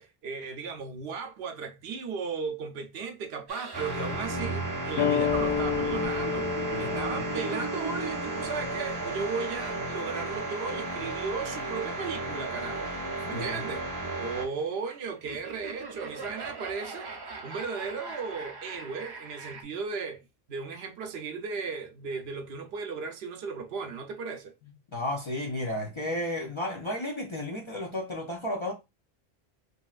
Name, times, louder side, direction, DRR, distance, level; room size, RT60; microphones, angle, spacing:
voice 1, 0.0-6.5 6.8-12.9 13.3-13.8 14.2-17.1 17.4-20.2 20.5-24.5, right 5 dB, 80° right, 0.8 m, -36 dB
sound 1, 3.5-19.6, right 4 dB, 40° right, 0.4 m, -42 dB
sound 2, 3.7-14.4, right 1 dB, 20° right, 0.7 m, -34 dB
sound 3, 5.0-10.1, left 7 dB, 70° left, 0.9 m, -32 dB
voice 2, 6.7-7.2 13.3-13.6 24.9-28.7, left 1 dB, 40° left, 0.4 m, -33 dB
3.0 x 2.7 x 2.3 m
omnidirectional pair, 1.0 m